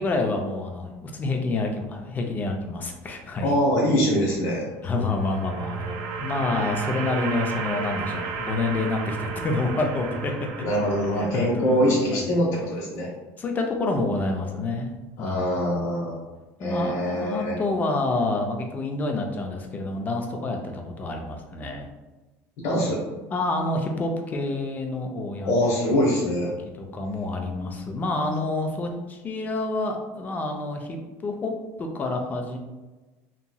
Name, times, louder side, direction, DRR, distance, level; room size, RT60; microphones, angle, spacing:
voice 1, 0.0-3.5 4.8-10.6 11.1-12.4 13.4-14.9 15.2-15.6 16.6-21.9 23.3-25.5 26.0-26.1 26.4-26.5 26.8-31.5 31.8-32.6, left 2 dB, 25° left, 3 dB, 0.4 m, -28 dB
voice 2, 3.4-4.6 10.6-13.1 15.2-16.1 16.6-17.6 22.6-23.0 25.4-26.5, equal, 65° left, -5 dB, 0.8 m, -23 dB
sound 1, 4.8-12.0, right 6 dB, 85° right, 0.4 m, -33 dB
2.9 x 2.7 x 2.2 m, 1.2 s
cardioid pair, 135°, 7 cm